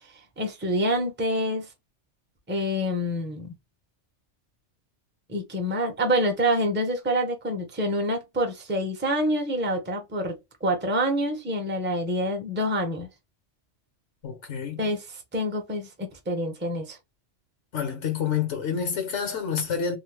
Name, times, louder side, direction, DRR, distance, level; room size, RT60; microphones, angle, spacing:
voice 1, 0.4-1.7 2.5-3.5 5.3-13.1 14.8-17.0, equal, 15° right, 0.5 m, -27 dB
voice 2, 14.2-14.9 17.7-20.0, left 7 dB, 75° left, 1.2 m, -28 dB
2.7 x 2.0 x 3.2 m
omnidirectional pair, 1.2 m